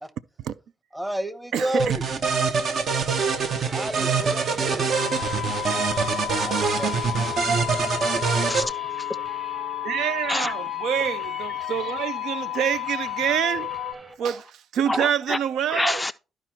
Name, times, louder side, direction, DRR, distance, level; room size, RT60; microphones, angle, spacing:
voice 1, 0.9-2.1 3.7-4.8 6.4-6.9, right 1 dB, 10° right, 0.8 m, -30 dB
voice 2, 1.5-2.0 9.8-13.7 14.2-16.0, right 9 dB, 75° right, 0.3 m, -26 dB
sound 1, 1.8-8.6, right 5 dB, 60° right, 0.9 m, -24 dB
sound 2, 3.0-14.1, right 2 dB, 35° right, 1.6 m, -42 dB
sound 3, 4.9-13.9, left 18 dB, 85° left, 0.4 m, -32 dB
voice 3, 8.2-9.1 10.3-10.5 14.9-15.4 15.7-16.1, left 2 dB, 15° left, 0.3 m, -28 dB
13.0 x 4.9 x 2.9 m
cardioid pair, 90°, 0 cm